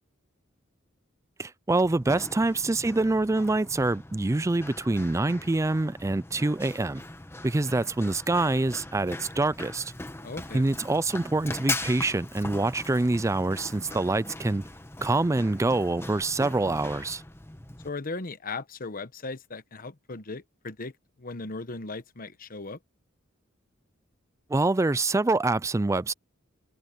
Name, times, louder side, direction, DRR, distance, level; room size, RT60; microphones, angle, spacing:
voice 1, 1.4-7.0 7.4-9.9 10.5-14.6 15.0-17.2 24.5-26.1, right 2 dB, 15° right, 0.4 m, -25 dB
Run, 1.8-17.9, left 2 dB, 10° left, 1.2 m, -40 dB
voice 2, 10.2-10.7 17.8-20.9 21.2-22.8, left 3 dB, 45° left, 1.1 m, -37 dB
head